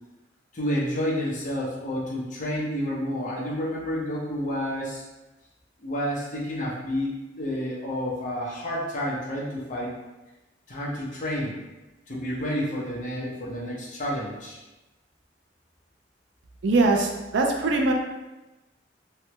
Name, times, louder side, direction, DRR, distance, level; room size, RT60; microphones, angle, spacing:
voice 1, 0.5-5.0 5.8-9.9 10.7-11.6 12.1-14.6, equal, 45° left, -5 dB, 0.7 m, -30 dB
voice 2, 16.6-17.9, right 3 dB, 85° right, 2 dB, 0.4 m, -22 dB
3.2 x 2.2 x 2.9 m, 1.1 s
head